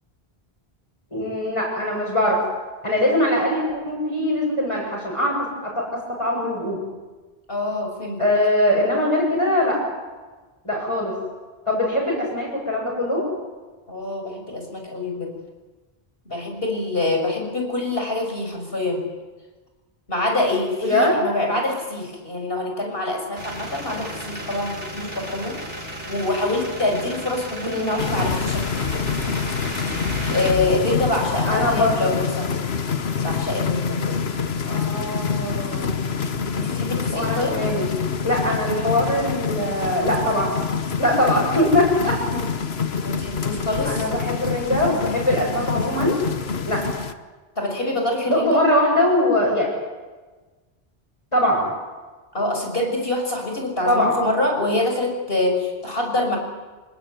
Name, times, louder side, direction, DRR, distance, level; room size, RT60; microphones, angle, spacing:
voice 1, 1.1-2.4 2.8-6.8 8.2-9.8 10.6-11.2 11.7-13.3 20.8-21.2 27.6-28.0 31.4-32.0 34.6-36.0 37.1-37.9 38.2-40.5 41.0-42.2 43.8-46.2 46.6-46.8 48.2-49.7 51.3-51.6 53.8-54.2, left 1 dB, 30° left, -6 dB, 8.2 m, -22 dB
voice 2, 7.5-8.2 13.9-15.4 16.2-19.1 20.1-25.6 26.1-29.1 30.3-32.6 33.2-34.2 36.5-37.6 42.0-42.4 43.0-44.1 47.6-48.6 52.3-56.4, left 2 dB, 65° left, 2 dB, 6.6 m, -25 dB
sound 1, 23.4-30.5, equal, 70° right, 5.8 m, -34 dB
sound 2, 28.0-47.1, left 6 dB, 80° left, 1.5 m, -26 dB
27.5 x 20.0 x 9.4 m, 1.3 s
omnidirectional pair, 1.0 m